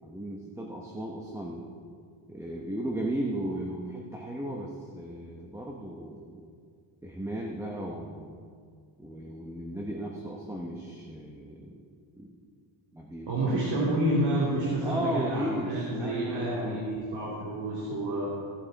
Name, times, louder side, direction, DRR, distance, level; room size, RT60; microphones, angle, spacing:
voice 1, 0.0-1.6 2.3-6.4 7.0-8.4 9.0-11.7 12.2-12.3 12.9-13.9 14.8-16.9, right 1 dB, 5° right, -1 dB, 0.8 m, -35 dB
voice 2, 13.3-18.3, right 1 dB, 55° right, -6 dB, 2.8 m, -29 dB
17.0 x 7.9 x 4.0 m, 2.2 s
cardioid pair, 140°, 46 cm